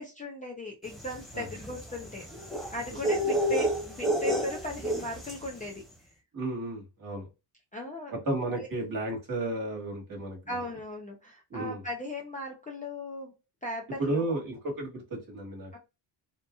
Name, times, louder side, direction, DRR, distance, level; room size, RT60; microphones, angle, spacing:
voice 1, 0.0-2.3 2.7-5.8 7.7-8.1 8.5-8.7 10.5-13.3 13.6-14.4 15.7-15.8, left 1 dB, 15° left, 0 dB, 0.5 m, -38 dB
sound 1, 1.0-5.5, equal, ahead, 1.3 m, -30 dB
voice 2, 6.3-7.3 8.2-10.4 11.5-11.8 14.0-15.8, right 2 dB, 45° right, -1 dB, 1.4 m, -33 dB
2.9 x 2.5 x 2.3 m, 0.26 s
cardioid pair, 120°, 48 cm